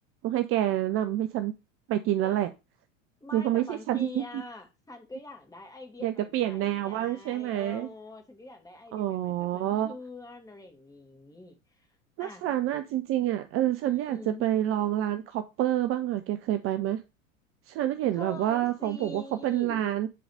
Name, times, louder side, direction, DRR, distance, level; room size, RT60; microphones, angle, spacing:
voice 1, 0.2-1.5 1.9-2.5 3.3-4.2 6.0-7.9 8.9-9.9 12.2-17.0 17.7-20.1, right 12 dB, 35° right, 0.7 m, -28 dB
voice 2, 3.2-11.9 12.2-12.4 13.8-14.5 18.1-19.9, left 2 dB, 10° left, 2.2 m, -45 dB
10.0 x 4.0 x 4.8 m
figure-of-eight pair, 80°, 38 cm